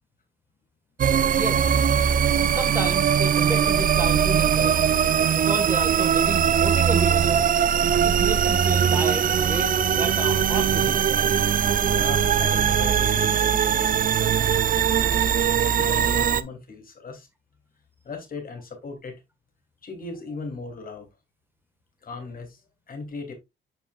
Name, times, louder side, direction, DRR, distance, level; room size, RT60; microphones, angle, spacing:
sound 1, 1.0-16.4, right 8 dB, 45° right, 0.6 m, -21 dB
voice 1, 1.3-1.7 2.4-4.8 5.3-7.5 7.9-11.4, right 1 dB, 10° right, 1.6 m, -32 dB
voice 2, 11.9-15.2 15.7-17.3 18.0-19.2 19.8-21.1 22.0-23.3, left 4 dB, 45° left, 3.0 m, -38 dB
8.0 x 6.7 x 2.4 m
cardioid pair, 90°, 20 cm